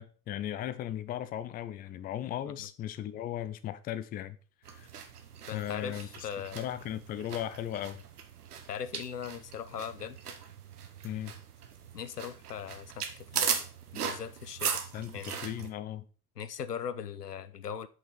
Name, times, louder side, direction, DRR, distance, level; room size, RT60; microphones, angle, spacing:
voice 1, 0.0-4.4 4.7-4.9 5.5-6.3 6.5-8.0 11.0-11.3 14.9-16.0, left 11 dB, 20° left, 0.4 m, -37 dB
sound 1, 4.6-15.7, right 7 dB, 75° right, 1.0 m, -38 dB
voice 2, 5.5-6.6 8.7-10.2 11.9-13.6 13.9-14.8 15.1-15.4 16.4-17.9, left 8 dB, 90° left, 0.5 m, -39 dB
5.5 x 5.5 x 5.0 m
figure-of-eight pair, 65°, 46 cm